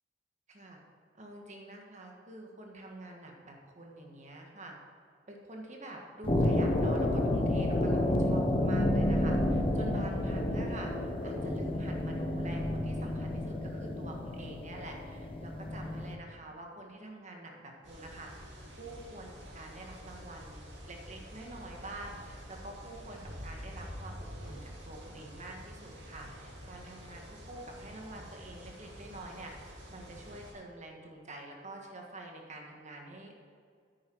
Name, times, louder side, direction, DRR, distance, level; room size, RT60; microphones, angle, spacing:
voice 1, 0.5-0.8 1.1-4.7 5.3-33.4, right 2 dB, 40° right, 1 dB, 1.7 m, -47 dB
sound 1, 6.2-16.1, left 1 dB, 30° left, 0.9 m, -30 dB
sound 2, 17.8-30.5, equal, 75° right, 3.1 m, -47 dB
9.5 x 9.5 x 4.7 m, 2.2 s
head